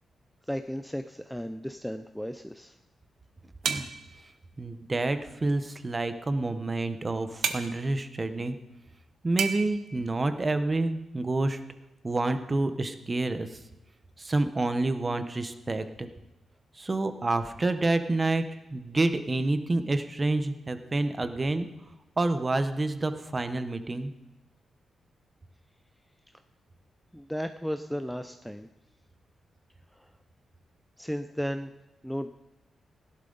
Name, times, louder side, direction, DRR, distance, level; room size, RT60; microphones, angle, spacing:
voice 1, 0.5-2.7 27.1-28.7 30.0-30.1 31.0-31.7 32.0-32.3, equal, ahead, 9 dB, 0.4 m, -34 dB
sound 1, 3.6-4.1 7.4-7.7 9.4-9.7, right 7 dB, 85° right, 1.0 m, -29 dB
voice 2, 4.6-8.6 9.2-11.6 12.0-13.6 14.2-16.1 16.8-18.4 18.7-21.7 22.2-24.1, right 2 dB, 20° right, 10 dB, 0.8 m, -28 dB
17.0 x 11.5 x 3.9 m, 0.98 s
wide cardioid pair, 165°, 0 cm